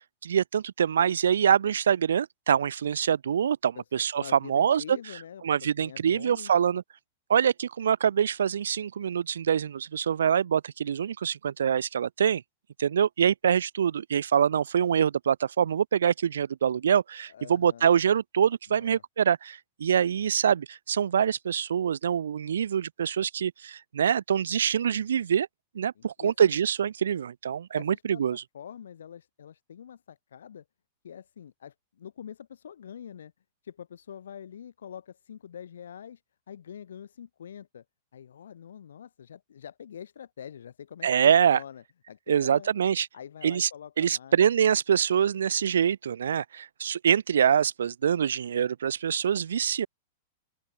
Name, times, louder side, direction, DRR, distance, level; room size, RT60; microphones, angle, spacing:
voice 1, 0.2-4.2 4.5-5.0 5.4-6.8 7.3-12.4 12.8-25.5 25.7-28.4 41.0-41.6 42.3-43.1 43.4-43.7 44.0-49.9, right 8 dB, 90° right, 0.4 m, -25 dB
voice 2, 4.2-6.6 17.3-17.9 18.7-19.0 26.0-26.5 27.7-30.6 31.0-33.3 33.6-36.2 36.5-37.8 38.1-42.7 43.1-44.5, left 8 dB, 85° left, 2.5 m, -45 dB
open air
hypercardioid pair, 130°, 0 cm